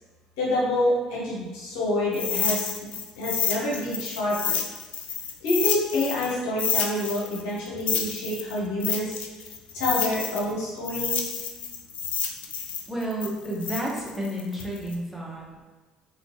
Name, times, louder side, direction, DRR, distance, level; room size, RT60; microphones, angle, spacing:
voice 1, 0.4-2.7 3.2-4.6 5.4-9.2 9.7-11.2, left 1 dB, 80° left, -5 dB, 0.9 m, -27 dB
sound 1, 2.1-6.3 6.6-10.5 10.8-14.9, left 7 dB, 60° left, 0.4 m, -29 dB
voice 2, 12.9-15.6, right 1 dB, 5° right, -4 dB, 1.1 m, -31 dB
3.6 x 2.8 x 3.1 m, 1.3 s
hypercardioid pair, 55°, 3 cm